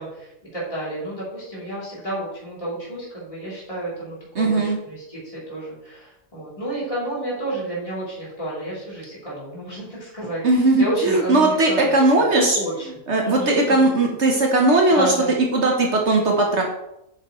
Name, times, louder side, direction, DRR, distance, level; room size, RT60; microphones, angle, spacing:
voice 1, 0.0-12.9 13.2-13.9 14.9-15.3, right 1 dB, 25° left, -7 dB, 3.3 m, -31 dB
voice 2, 4.3-4.8 10.4-12.6 13.1-15.1 15.5-16.6, right 2 dB, 55° right, 0 dB, 1.3 m, -18 dB
8.5 x 6.6 x 3.1 m, 0.86 s
omnidirectional pair, 1.4 m